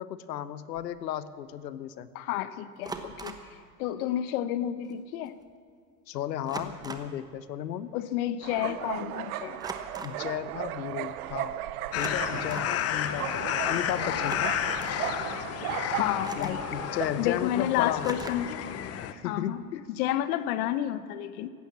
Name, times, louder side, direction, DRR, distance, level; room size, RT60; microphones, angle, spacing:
voice 1, 0.0-2.1 6.1-7.9 10.0-11.5 12.0-14.5 16.4-18.1 19.1-19.8, left 10 dB, 90° left, 15 dB, 0.9 m, -34 dB
sound 1, 0.8-0.9 2.8-3.5 4.9-5.0 5.3-5.5 6.5-7.2 9.6-10.2 11.9-12.8 14.1-15.1 16.2-16.7 18.0-18.6, right 3 dB, 10° right, 1.0 m, -41 dB
voice 2, 2.1-3.4 3.8-5.3 7.9-9.6 16.0-16.6 17.2-18.6 19.2-19.6 20.0-21.5, left 12 dB, 60° left, 13 dB, 1.0 m, -30 dB
sound 2, 8.4-17.1, right 13 dB, 60° right, 0.9 m, -36 dB
sound 3, 11.9-19.1, left 10 dB, 30° left, 0.8 m, -32 dB
16.0 x 12.0 x 7.4 m, 2.1 s
hypercardioid pair, 110°, 49 cm